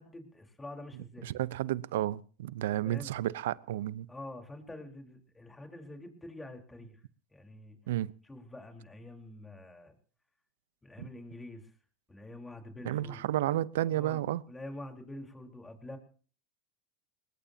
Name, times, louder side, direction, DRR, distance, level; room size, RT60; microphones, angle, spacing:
voice 1, 0.0-1.3 2.8-3.1 4.1-7.0 7.3-7.8 8.2-9.9 10.8-11.7 12.1-13.2 13.9-16.0, left 1 dB, 10° left, 5 dB, 4.3 m, -46 dB
voice 2, 1.2-4.1 7.9-8.1 11.0-11.1 12.8-14.4, right 13 dB, 75° right, 20 dB, 0.8 m, -32 dB
22.0 x 20.0 x 2.9 m, 0.39 s
hypercardioid pair, 100°, 0 cm